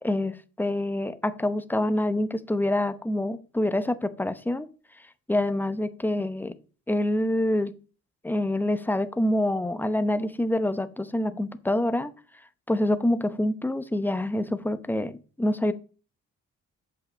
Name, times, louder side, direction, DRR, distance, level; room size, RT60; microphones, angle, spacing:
voice 1, 0.0-4.7 5.3-6.6 6.9-7.8 8.2-12.1 12.7-15.7, left 1 dB, 5° left, 12 dB, 0.8 m, -26 dB
7.4 x 5.7 x 7.1 m, 0.39 s
cardioid pair, 90°, 30 cm